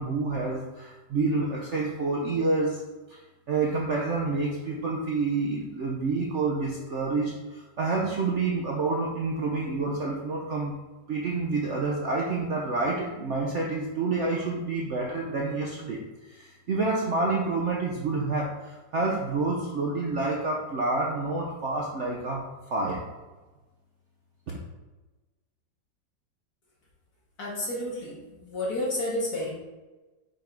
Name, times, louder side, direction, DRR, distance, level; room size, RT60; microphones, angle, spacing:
voice 1, 0.0-2.8 3.1-3.2 3.5-10.7 11.1-23.0 24.5-24.6, right 3 dB, 60° right, -2 dB, 0.8 m, -28 dB
voice 2, 27.4-29.5, left 1 dB, 60° left, -5 dB, 1.6 m, -31 dB
5.7 x 3.4 x 5.1 m, 1.2 s
omnidirectional pair, 1.9 m